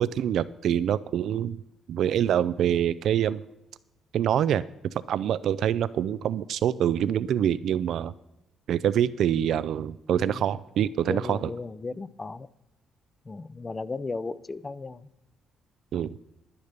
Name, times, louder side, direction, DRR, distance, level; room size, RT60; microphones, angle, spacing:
voice 1, 0.0-1.6 1.9-3.4 4.1-4.6 5.1-8.1 8.7-11.5 15.9-16.1, right 10 dB, 70° right, 16 dB, 0.4 m, -25 dB
voice 2, 10.1-10.5 11.1-12.5 13.3-15.0, left 3 dB, 25° left, 18 dB, 0.6 m, -35 dB
10.0 x 9.7 x 6.7 m, 0.89 s
cardioid pair, 90°, 0 cm